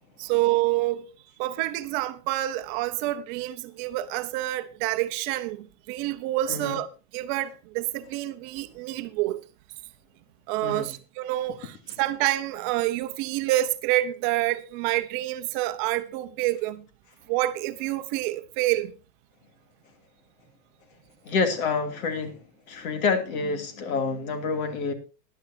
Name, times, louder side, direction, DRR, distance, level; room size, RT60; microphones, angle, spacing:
voice 1, 0.2-1.1 1.4-6.9 7.1-9.4 10.5-16.9 17.3-18.9, right 16 dB, 30° right, 0.9 m, -27 dB
voice 2, 10.6-10.9 21.2-22.4 22.7-24.9, left 4 dB, 60° left, 2.7 m, -27 dB
18.5 x 11.5 x 2.7 m
supercardioid pair, 165°, 48 cm